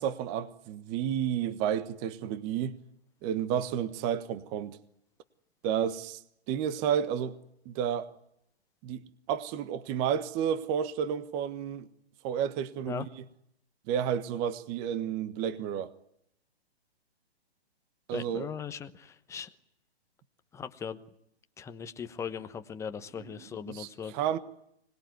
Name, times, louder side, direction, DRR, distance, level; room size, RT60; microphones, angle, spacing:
voice 1, 0.0-2.8 3.2-4.8 5.6-6.2 6.5-7.4 7.6-8.1 8.8-9.0 9.3-11.9 12.2-13.1 13.9-15.9 18.1-18.5 23.2-24.4, right 9 dB, 25° right, 1.4 m, -31 dB
voice 2, 18.1-19.5 20.5-21.0 21.6-24.1, left 7 dB, 10° left, 1.1 m, -39 dB
26.0 x 20.5 x 9.5 m
figure-of-eight pair, 135°, 32 cm